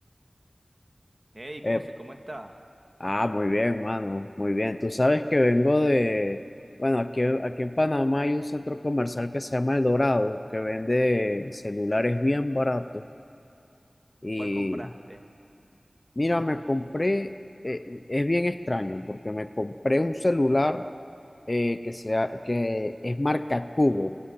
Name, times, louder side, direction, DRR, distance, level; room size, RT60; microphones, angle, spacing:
voice 1, 1.3-2.6 14.4-15.2, right 1 dB, 30° right, 5 dB, 2.0 m, -41 dB
voice 2, 3.0-6.4 6.8-13.0 14.2-14.9 16.2-17.3 17.6-20.9 21.5-24.2, left 1 dB, 35° left, 10 dB, 0.7 m, -25 dB
28.5 x 21.5 x 8.9 m, 2.7 s
wide cardioid pair, 55°, 0 cm